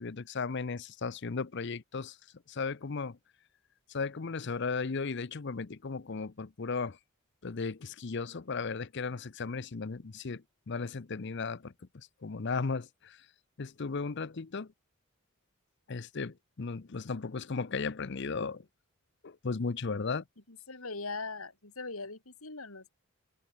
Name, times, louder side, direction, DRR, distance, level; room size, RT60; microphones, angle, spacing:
voice 1, 0.0-2.1 2.5-3.2 3.9-7.0 7.4-11.7 12.2-13.2 13.6-14.7 15.9-18.6 19.2-20.2, left 4 dB, 55° left, 0.7 m, -35 dB
voice 2, 20.5-22.9, left 3 dB, 85° left, 4.2 m, -40 dB
head